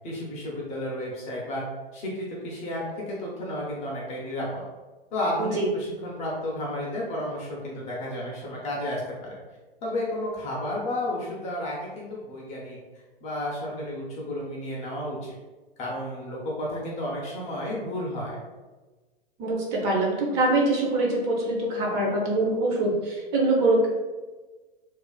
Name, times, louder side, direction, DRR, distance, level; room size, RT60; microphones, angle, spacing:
voice 1, 0.0-1.6 1.9-4.6 5.1-9.4 9.8-12.8 13.2-15.3 15.8-18.4, left 1 dB, 25° left, -4 dB, 0.5 m, -32 dB
voice 2, 19.4-23.9, right 2 dB, 35° right, -2 dB, 0.6 m, -24 dB
2.4 x 2.4 x 2.3 m, 1.2 s
figure-of-eight pair, 100°, 30 cm